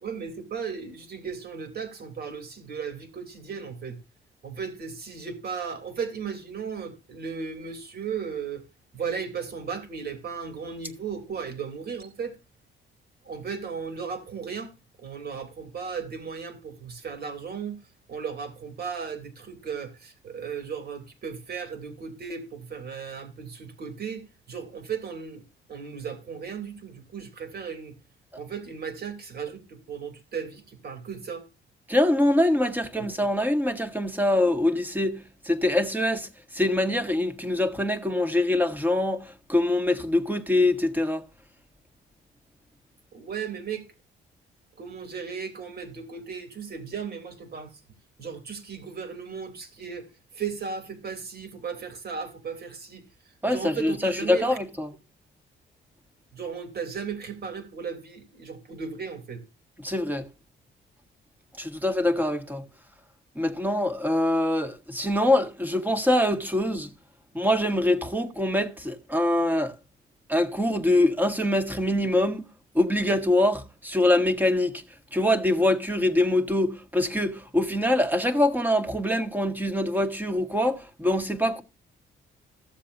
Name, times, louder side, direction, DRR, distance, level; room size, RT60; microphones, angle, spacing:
voice 1, 0.0-4.0 4.4-8.6 8.9-12.3 13.3-14.7 15.0-17.8 18.1-25.4 25.7-27.9 28.4-31.4 43.1-43.8 44.8-47.7 48.2-50.1 50.3-53.0 53.5-54.4 56.3-59.4, right 6 dB, 50° right, 2.9 m, -36 dB
voice 2, 31.9-41.2 53.4-54.9 59.8-60.3 61.6-62.6 63.3-66.9 67.3-69.7 70.3-72.5 72.7-74.8 75.1-81.6, left 1 dB, 10° right, 1.6 m, -24 dB
15.0 x 7.4 x 2.6 m
cardioid pair, 90°, 20 cm